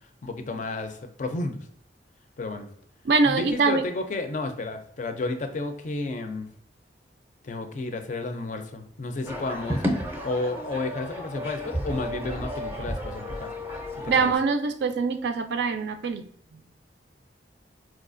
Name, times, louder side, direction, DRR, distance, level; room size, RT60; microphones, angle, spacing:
voice 1, 0.2-1.6 2.4-2.7 3.2-6.5 7.4-9.8 10.2-13.5 14.0-14.3, left 2 dB, 40° left, 7 dB, 0.4 m, -32 dB
voice 2, 3.0-3.8 14.1-16.2, right 4 dB, 65° right, 8 dB, 0.4 m, -23 dB
sound 1, 9.2-14.4, equal, 10° right, 0.5 m, -32 dB
4.4 x 2.4 x 2.5 m, 0.68 s
head